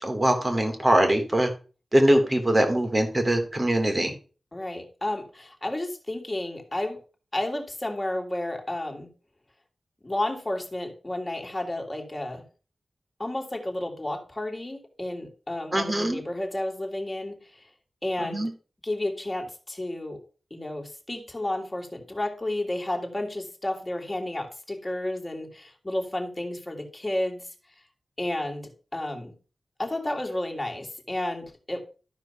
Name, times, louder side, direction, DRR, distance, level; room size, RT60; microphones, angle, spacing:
voice 1, 0.0-1.5 1.9-4.1 15.7-16.2 18.3-18.5, right 1 dB, 30° right, 4 dB, 3.2 m, -22 dB
voice 2, 4.5-7.0 7.3-9.1 10.0-12.4 13.2-17.6 18.0-18.5 18.8-20.2 20.5-27.5 28.2-29.3 29.8-31.8, left 1 dB, 25° left, 2 dB, 3.3 m, -31 dB
13.0 x 4.9 x 5.8 m, 0.36 s
cardioid pair, 55°, 0 cm